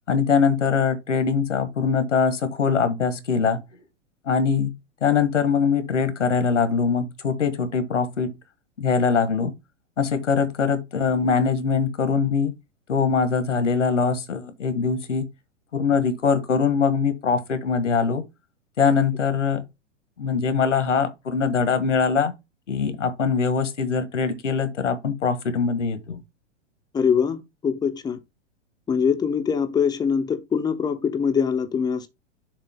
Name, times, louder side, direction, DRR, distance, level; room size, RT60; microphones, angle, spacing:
voice 1, 0.1-3.6 4.3-4.7 5.0-8.4 8.8-9.5 10.0-12.5 12.9-15.3 15.7-18.2 18.8-19.6 20.2-22.3 22.7-26.2, left 5 dB, 80° left, 1.4 m, -22 dB
voice 2, 26.9-28.2 28.9-32.1, left 6 dB, 10° left, 0.6 m, -23 dB
6.8 x 2.9 x 5.6 m
figure-of-eight pair, 105°, 37 cm